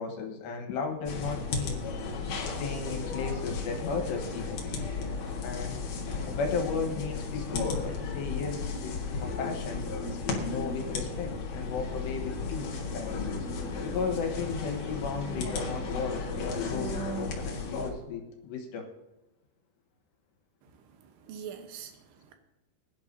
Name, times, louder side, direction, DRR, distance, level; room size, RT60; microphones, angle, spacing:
voice 1, 0.0-1.8 2.4-4.6 5.4-5.8 6.3-9.9 10.4-13.3 13.8-18.9, left 4 dB, 80° left, 3 dB, 3.5 m, -35 dB
sound 1, 1.0-17.9, left 4 dB, 55° left, 2.1 m, -34 dB
voice 2, 20.6-22.3, right 8 dB, 75° right, 5 dB, 3.1 m, -45 dB
21.5 x 11.0 x 2.8 m, 0.99 s
omnidirectional pair, 5.1 m